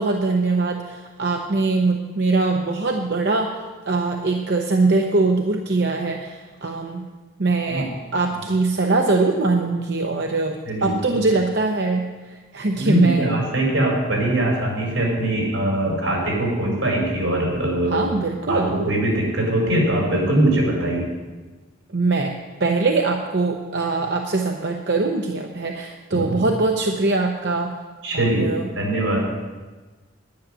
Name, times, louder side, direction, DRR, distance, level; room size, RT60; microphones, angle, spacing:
voice 1, 0.0-3.5 3.8-7.1 7.4-13.3 17.9-18.8 21.9-22.3 22.6-27.7 28.1-28.7, right 3 dB, 55° right, 2 dB, 0.8 m, -22 dB
voice 2, 10.6-11.3 12.8-18.1 18.5-21.1 26.1-26.2 28.0-29.2, right 1 dB, 85° right, -2 dB, 4.9 m, -22 dB
10.5 x 10.0 x 6.2 m, 1.3 s
head